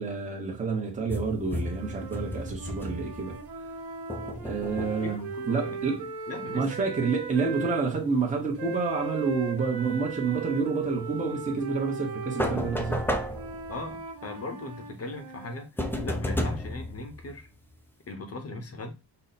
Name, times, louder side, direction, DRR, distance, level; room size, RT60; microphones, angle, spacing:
voice 1, 0.0-3.4 4.4-6.1 6.5-13.0, right 4 dB, 15° right, 0.9 m, -29 dB
sound 1, 1.1-3.5 4.1-5.3 12.4-14.0 15.8-17.8, left 1 dB, 5° left, 0.4 m, -33 dB
sound 2, 1.6-7.9 8.6-15.7, right 5 dB, 60° right, 1.2 m, -38 dB
voice 2, 5.4-6.0 6.3-6.9 13.7-17.5 18.1-18.9, left 3 dB, 35° left, 0.8 m, -39 dB
5.4 x 2.1 x 4.1 m
wide cardioid pair, 170°, 43 cm